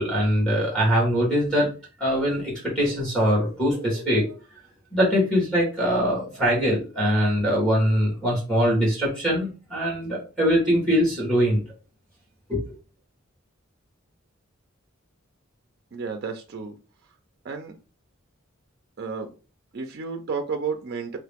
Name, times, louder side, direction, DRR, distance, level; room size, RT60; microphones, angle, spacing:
voice 1, 0.0-1.7 2.0-4.3 4.9-11.6 12.5-12.6, equal, 5° left, 1.4 m, -22 dB
voice 2, 15.9-16.8 17.4-17.7 19.0-19.3 19.7-21.2, right 5 dB, 50° right, 0.4 m, -31 dB
3.0 x 2.8 x 3.4 m
head